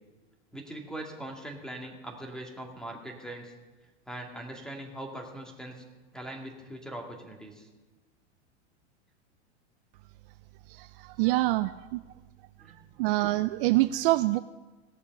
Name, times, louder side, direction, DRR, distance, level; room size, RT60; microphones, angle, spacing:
voice 1, 0.5-3.5 4.1-5.8 6.1-7.7 12.6-12.7, right 1 dB, ahead, 1 dB, 2.4 m, -41 dB
voice 2, 10.7-12.0 13.0-14.4, right 18 dB, 55° right, 12 dB, 0.5 m, -26 dB
18.5 x 6.8 x 5.5 m, 1.2 s
hypercardioid pair, 120°, 34 cm